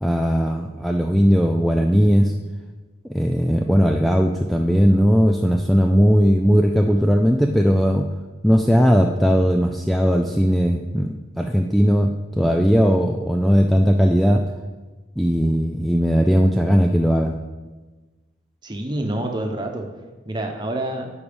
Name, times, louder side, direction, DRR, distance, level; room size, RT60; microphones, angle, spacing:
voice 1, 0.0-2.3 3.1-8.1 8.4-14.4 15.2-17.3, equal, ahead, 3 dB, 0.4 m, -18 dB
voice 2, 18.6-19.9 20.2-21.1, right 1 dB, 25° right, 3 dB, 1.1 m, -27 dB
10.5 x 4.8 x 7.1 m, 1.2 s
head